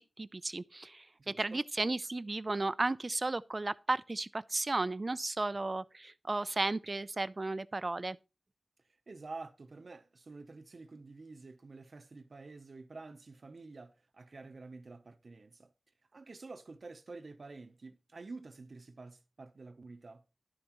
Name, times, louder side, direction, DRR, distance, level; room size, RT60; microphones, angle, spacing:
voice 1, 0.0-8.2, right 2 dB, 40° right, 0.4 m, -34 dB
voice 2, 1.2-1.6 9.1-15.7 16.1-20.2, right 3 dB, 60° right, 0.7 m, -49 dB
11.0 x 8.7 x 3.0 m
wide cardioid pair, 65°, 0 cm